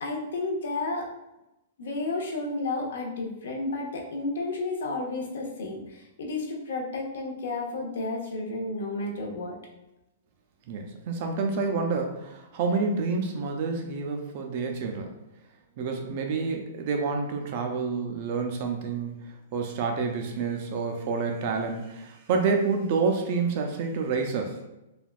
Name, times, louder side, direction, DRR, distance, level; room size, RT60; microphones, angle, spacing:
voice 1, 0.0-1.1 1.8-9.5, left 2 dB, 70° left, 0 dB, 0.7 m, -32 dB
voice 2, 10.7-15.1 15.8-24.7, right 4 dB, 35° right, 3 dB, 0.4 m, -28 dB
3.3 x 2.2 x 2.4 m, 0.93 s
hypercardioid pair, 175°, 0 cm